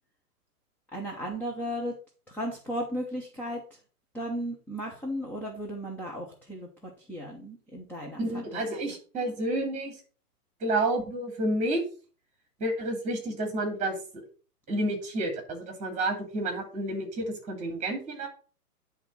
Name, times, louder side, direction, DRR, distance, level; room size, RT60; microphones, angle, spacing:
voice 1, 0.9-1.9 2.3-3.6 4.1-8.9, equal, 5° left, -2 dB, 0.8 m, -35 dB
voice 2, 8.2-9.9 10.6-11.8 12.6-14.0 14.7-18.3, right 1 dB, 15° right, 4 dB, 2.7 m, -30 dB
10.0 x 3.6 x 5.5 m, 0.38 s
hypercardioid pair, 140°, 46 cm